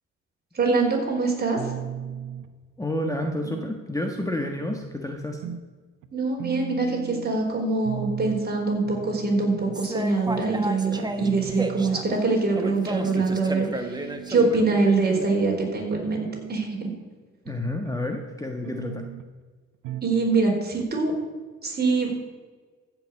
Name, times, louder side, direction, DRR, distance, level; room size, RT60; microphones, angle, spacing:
voice 1, 0.5-1.7 6.1-16.9 20.0-21.1 21.6-22.1, right 3 dB, 30° right, 0 dB, 4.2 m, -24 dB
sound 1, 1.5-2.5 3.0-3.8 4.2-4.9 5.4-5.7 6.0-6.1 6.4-7.4 7.8-8.5 8.8-9.8 10.3-10.5 10.9-11.0 11.2-12.1 12.6-13.3 13.8-14.5 15.0-15.6 16.0-17.1 17.5-18.1 18.6-19.3 19.8-20.2 20.5-20.6 20.8-20.9, right 10 dB, 90° right, 0.9 m, -38 dB
voice 2, 2.8-5.4 17.4-19.1, left 1 dB, 10° left, 3 dB, 1.3 m, -30 dB
sound 2, 9.7-15.3, right 1 dB, 15° right, 1.4 m, -33 dB
14.0 x 6.0 x 8.4 m, 1.4 s
cardioid pair, 90°, 30 cm